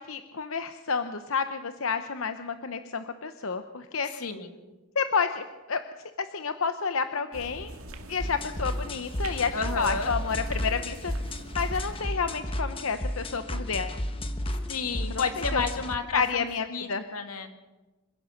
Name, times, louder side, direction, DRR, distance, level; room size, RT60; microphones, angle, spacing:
voice 1, 0.0-4.1 4.9-5.8 6.2-7.7 8.1-11.1 11.5-14.0 15.1-15.3 15.5-15.6 16.1-17.0, left 5 dB, 65° left, 9 dB, 0.9 m, -30 dB
voice 2, 4.1-4.5 9.5-10.1 14.5-17.5, left 4 dB, 90° left, 6 dB, 2.3 m, -32 dB
sound 1, 7.3-12.4, right 1 dB, 70° right, 2.2 m, -42 dB
sound 2, 8.2-16.0, left 1 dB, 25° left, 1.3 m, -33 dB
26.5 x 16.5 x 6.6 m, 1.2 s
head